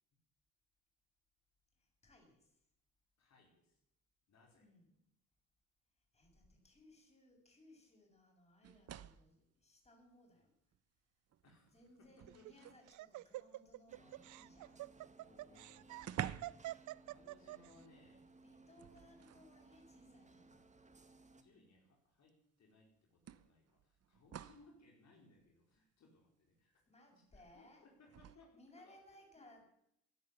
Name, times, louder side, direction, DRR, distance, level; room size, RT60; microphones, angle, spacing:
voice 1, 1.8-2.6 4.6-4.9 6.1-10.5 11.7-14.9 17.7-17.9 18.4-20.7 26.9-27.8 28.5-29.6, left 1 dB, 20° left, 1 dB, 7.0 m, -64 dB
voice 2, 3.2-3.8 4.3-4.7 11.4-12.5 15.2-16.6 17.1-18.2 21.3-26.7 27.1-29.6, left 2 dB, 60° left, 0 dB, 4.6 m, -67 dB
sound 1, 8.6-9.4 10.7-10.8 11.3-12.9 15.0-15.1 15.3-15.4 16.0-16.7 17.0-17.2 18.7-19.5 20.6-20.7 22.3-22.4 23.3-24.7 28.1-28.4, right 10 dB, 55° right, 0.9 m, -49 dB
Laughter, 12.3-17.7, right 17 dB, 75° right, 0.5 m, -47 dB
sound 2, 13.9-21.4, right 3 dB, 25° right, 2.1 m, -63 dB
16.0 x 11.0 x 8.1 m, 0.75 s
cardioid pair, 90°, 30 cm